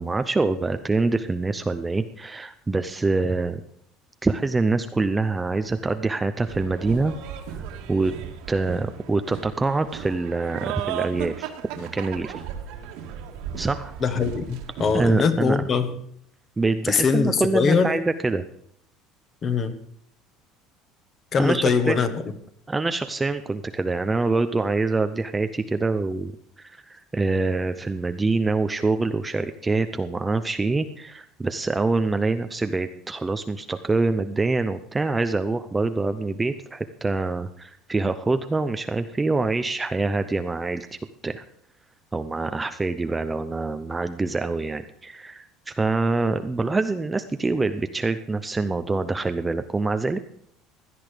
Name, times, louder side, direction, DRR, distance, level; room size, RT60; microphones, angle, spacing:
voice 1, 0.0-3.6 4.2-7.2 7.5-7.6 7.9-8.1 8.5-12.4 13.5-13.9 14.9-15.7 16.6-18.4 21.4-22.0 22.7-26.3 26.6-41.0 41.2-41.4 42.1-50.2, right 3 dB, 10° right, 9 dB, 0.6 m, -25 dB
sound 1, 6.5-15.1, right 9 dB, 75° right, 2.1 m, -35 dB
voice 2, 14.0-15.9 16.9-17.9 19.4-19.7 21.3-22.1, left 5 dB, 30° left, 10 dB, 1.4 m, -22 dB
17.0 x 11.0 x 5.1 m, 0.68 s
cardioid pair, 160°, 0 cm